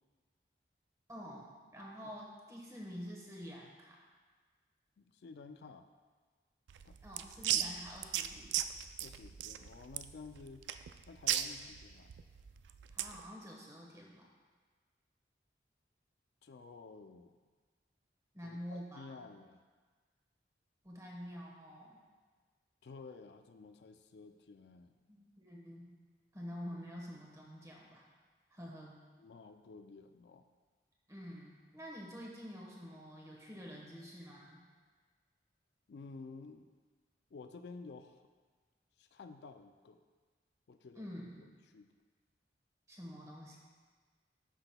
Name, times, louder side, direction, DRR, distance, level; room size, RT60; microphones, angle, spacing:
voice 1, 1.1-4.0 7.0-8.5 12.9-14.3 18.3-19.2 20.8-22.0 25.1-25.9 26.3-28.0 28.5-29.0 31.1-34.6 41.0-41.6 42.9-43.6, equal, 20° right, -2 dB, 1.2 m, -48 dB
voice 2, 5.0-5.9 6.8-7.0 7.5-7.6 9.0-10.7 11.1-12.1 16.4-17.4 18.4-19.6 22.8-25.0 29.2-30.5 35.9-36.7 37.3-38.2 39.0-40.0 40.7-41.0 41.7-41.9, left 4 dB, 70° left, 8 dB, 0.4 m, -52 dB
sound 1, 6.7-13.2, right 11 dB, 80° right, 0.3 m, -37 dB
13.0 x 5.9 x 2.2 m, 1.4 s
head